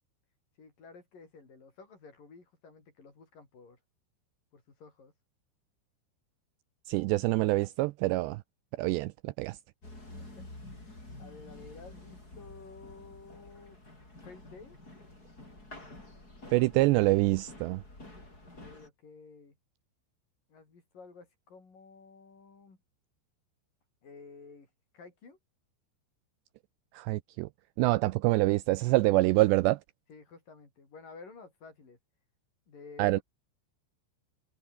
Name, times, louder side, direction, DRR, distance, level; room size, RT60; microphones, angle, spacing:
voice 1, 0.6-3.8 4.5-5.1 10.2-13.8 14.2-14.8 18.6-19.6 20.5-22.8 24.0-25.4 30.1-32.0 32.7-33.2, left 4 dB, 45° left, 7.4 m, -52 dB
voice 2, 6.9-8.4 8.8-9.6 16.5-17.8 26.9-27.5 27.8-29.8 33.0-33.2, right 20 dB, 85° right, 2.5 m, -26 dB
sound 1, 9.8-18.9, left 2 dB, 20° left, 8.1 m, -49 dB
omnidirectional pair, 5.5 m